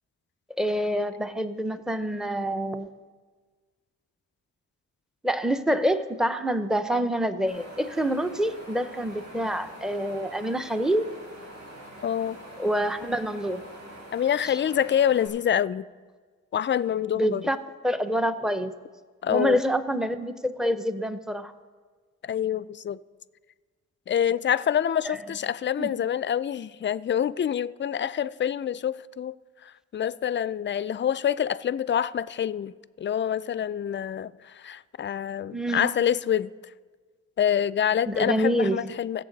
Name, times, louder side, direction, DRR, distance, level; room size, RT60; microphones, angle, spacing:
voice 1, 0.6-2.9 5.2-11.1 12.6-13.6 17.1-17.6 17.8-18.7 19.3-21.5 25.0-25.2 25.8-25.9 35.5-35.9 38.1-38.9, equal, ahead, 0.7 m, -26 dB
Wind, 7.5-15.3, right 1 dB, 65° right, 3.6 m, -45 dB
voice 2, 12.0-12.4 14.1-15.8 16.5-17.5 19.2-19.6 22.2-23.0 24.1-29.3 29.6-32.7 33.0-36.5 37.4-39.2, left 9 dB, 35° left, 0.4 m, -26 dB
21.0 x 7.2 x 4.0 m
cardioid pair, 65°, 31 cm